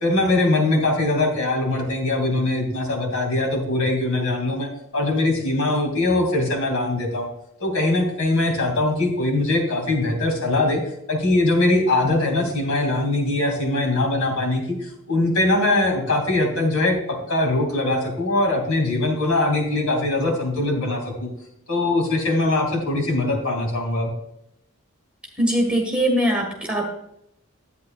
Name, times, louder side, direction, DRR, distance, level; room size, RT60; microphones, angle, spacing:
voice 1, 0.0-4.7 4.9-7.3 7.6-10.8 11.1-21.3 21.7-24.1, left 2 dB, 80° left, 1 dB, 2.9 m, -22 dB
voice 2, 25.4-26.9, right 1 dB, 5° right, 0 dB, 1.8 m, -21 dB
11.0 x 9.2 x 2.5 m, 0.79 s
head